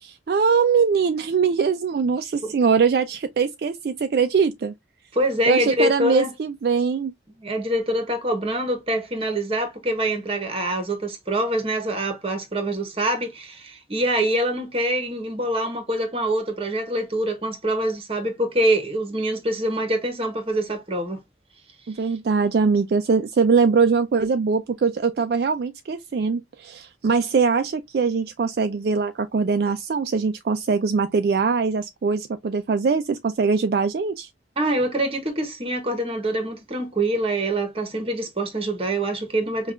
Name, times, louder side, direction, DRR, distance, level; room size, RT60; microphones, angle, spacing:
voice 1, 0.0-4.7 5.5-7.1 21.9-34.3, right 5 dB, 55° right, 0.3 m, -22 dB
voice 2, 5.1-6.3 7.4-21.2 34.6-39.7, right 1 dB, 30° right, 1.0 m, -25 dB
5.4 x 2.3 x 2.3 m
head